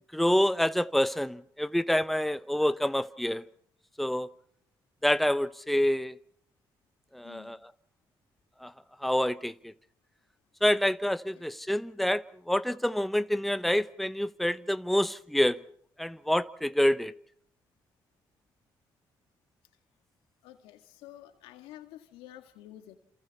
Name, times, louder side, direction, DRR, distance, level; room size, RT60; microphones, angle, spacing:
voice 1, 0.1-3.5 4.0-4.3 5.0-6.2 7.1-7.6 8.6-8.7 9.0-9.7 10.6-15.6 16.0-17.1, left 1 dB, ahead, 0.9 m, -27 dB
voice 2, 7.2-7.6 11.4-11.5 20.4-23.0, left 13 dB, 85° left, 1.9 m, -50 dB
28.0 x 28.0 x 4.2 m
supercardioid pair, 50°, 9 cm